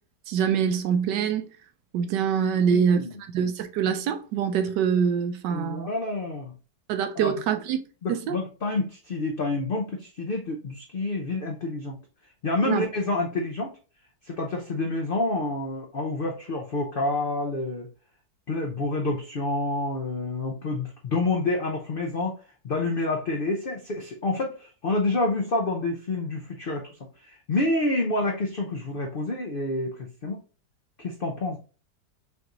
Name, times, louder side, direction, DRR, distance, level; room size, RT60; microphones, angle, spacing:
voice 1, 0.3-1.5 1.9-3.0 3.3-5.9 6.9-7.8 8.1-8.4 12.6-12.8, right 7 dB, 90° right, 1.3 m, -24 dB
voice 2, 2.7-3.2 5.5-6.5 7.2-7.3 8.0-12.0 12.4-13.7 14.3-17.9 18.5-22.4 22.6-26.9 27.2-30.4 31.0-31.6, left 2 dB, 55° left, 0.6 m, -28 dB
5.7 x 2.6 x 2.9 m
omnidirectional pair, 1.8 m